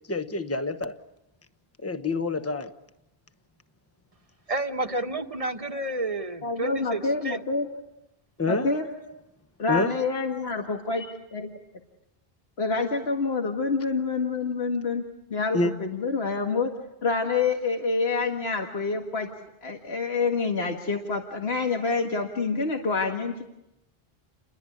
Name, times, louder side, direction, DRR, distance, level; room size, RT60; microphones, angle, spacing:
voice 1, 0.1-1.0 1.8-2.7 8.4-8.7 9.7-9.9 15.5-15.7, left 3 dB, 15° left, 9 dB, 1.1 m, -27 dB
voice 2, 4.5-7.4, right 2 dB, 35° right, 6 dB, 1.4 m, -30 dB
voice 3, 6.4-7.7 8.5-8.9 9.6-11.5 12.6-15.0 15.3-16.7 17.0-19.3 19.6-23.4, left 4 dB, 85° left, 2 dB, 2.0 m, -27 dB
29.5 x 21.5 x 8.6 m, 0.91 s
omnidirectional pair, 1.0 m